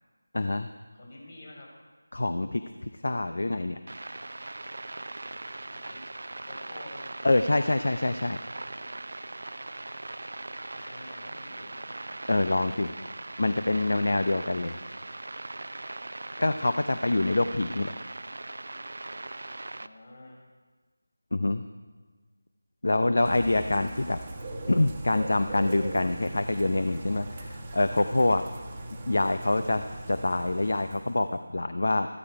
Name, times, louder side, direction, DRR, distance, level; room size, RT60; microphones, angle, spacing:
voice 1, 0.3-0.7 2.1-3.8 7.2-8.4 12.3-12.9 13.4-14.8 16.4-17.9 21.3-21.6 22.8-24.2 24.7-28.4 29.1-29.8 30.1-31.3 31.5-32.1, left 2 dB, 55° left, 9 dB, 0.7 m, -25 dB
voice 2, 0.9-1.7 5.7-6.0 6.5-7.5 10.7-13.2 19.7-20.4, left 1 dB, 40° left, -2 dB, 5.2 m, -49 dB
sound 1, 3.9-19.9, right 2 dB, 55° right, 0.5 m, -40 dB
Bird / Rain, 23.2-31.4, right 2 dB, 20° right, 1.3 m, -39 dB
14.0 x 13.5 x 4.7 m, 1.4 s
figure-of-eight pair, 165°, 0 cm